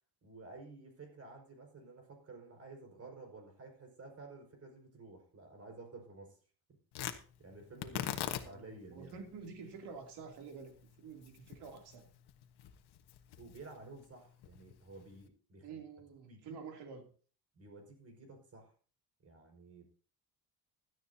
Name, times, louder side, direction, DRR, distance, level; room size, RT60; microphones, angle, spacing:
voice 1, 0.2-6.4 6.7-6.8 7.4-8.2 8.4-9.2 13.4-15.8 16.3-16.6 17.5-18.7 19.2-19.9, right 3 dB, 40° right, 4 dB, 5.1 m, -52 dB
Tearing, 6.9-15.3, left 11 dB, 80° left, 1.4 m, -45 dB
voice 2, 7.9-12.1 15.6-17.1, right 5 dB, 90° right, 3 dB, 3.0 m, -49 dB
16.5 x 12.5 x 2.8 m, 0.40 s
cardioid pair, 130°, 38 cm